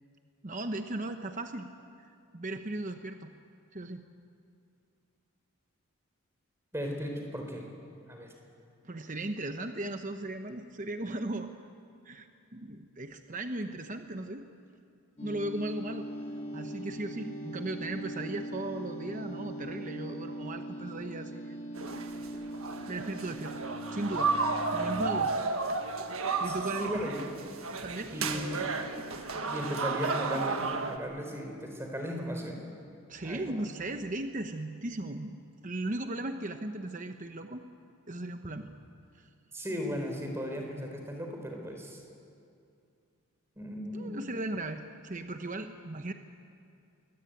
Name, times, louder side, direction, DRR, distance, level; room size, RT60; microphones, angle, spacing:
voice 1, 0.4-1.7 2.3-3.3 3.7-4.0 8.8-11.5 12.0-14.5 15.2-16.1 16.5-21.6 22.9-23.5 23.9-24.3 24.7-25.3 26.4-27.1 27.8-28.6 29.2-29.5 33.1-35.4 35.6-37.6 38.1-38.7 39.1-39.3 43.9-46.1, right 2 dB, 35° right, 6 dB, 0.9 m, -37 dB
voice 2, 6.7-7.7 8.0-8.3 26.4-27.2 28.1-28.7 29.5-32.7 33.2-33.6 39.5-42.0 43.6-44.2, equal, 10° right, 2 dB, 4.0 m, -36 dB
sound 1, 15.2-25.3, right 1 dB, 30° left, 1.8 m, -40 dB
sound 2, 21.8-31.0, right 4 dB, 70° right, 1.7 m, -33 dB
25.0 x 22.5 x 9.1 m, 2.4 s
head